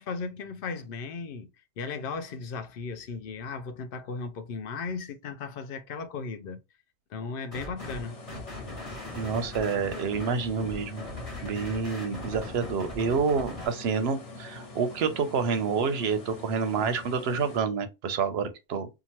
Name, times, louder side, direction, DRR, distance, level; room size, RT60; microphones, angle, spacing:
voice 1, 0.0-1.5 1.8-6.6 7.1-8.2, left 4 dB, 60° left, 0.7 m, -36 dB
sound 1, 7.5-8.0 8.3-13.7, left 1 dB, 30° left, 1.3 m, -40 dB
sound 2, 7.8-17.6, left 3 dB, 90° left, 1.3 m, -45 dB
voice 2, 9.1-11.0 11.4-18.9, right 5 dB, 65° right, 0.8 m, -28 dB
2.8 x 2.4 x 2.8 m
omnidirectional pair, 1.2 m